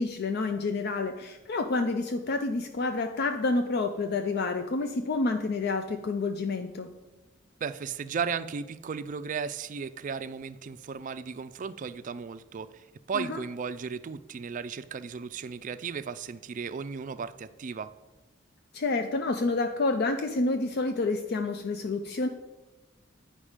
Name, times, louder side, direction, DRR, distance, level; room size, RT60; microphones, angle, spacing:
voice 1, 0.0-6.9 13.1-13.4 18.7-22.3, left 3 dB, 55° left, 7 dB, 0.4 m, -29 dB
voice 2, 7.6-17.9, right 6 dB, 40° right, 12 dB, 0.4 m, -35 dB
8.8 x 5.2 x 4.9 m, 1.1 s
head